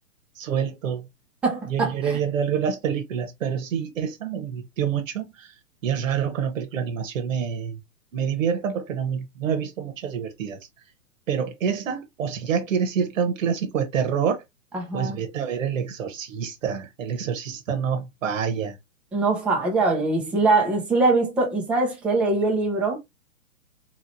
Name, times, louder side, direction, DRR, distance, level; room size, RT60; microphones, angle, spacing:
voice 1, 0.3-1.1 1.7-5.5 5.8-7.8 8.1-10.6 11.3-14.4 14.9-18.8, right 7 dB, 65° right, 1.1 m, -27 dB
voice 2, 1.4-2.2 14.7-15.2 19.1-23.0, right 3 dB, 5° right, 0.4 m, -22 dB
3.9 x 3.1 x 2.6 m
hypercardioid pair, 130°, 41 cm